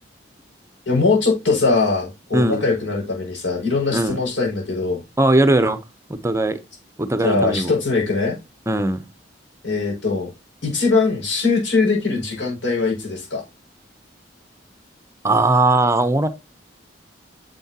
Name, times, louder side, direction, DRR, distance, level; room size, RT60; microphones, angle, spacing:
voice 1, 0.9-5.0 7.2-8.4 9.6-10.3 10.6-13.4, left 4 dB, 85° left, 5.6 m, -21 dB
voice 2, 2.3-2.7 3.9-4.2 5.2-5.8 6.1-6.6 7.0-7.7 8.7-9.1 15.2-16.3, right 2 dB, 15° right, 0.6 m, -19 dB
9.6 x 7.2 x 2.8 m
head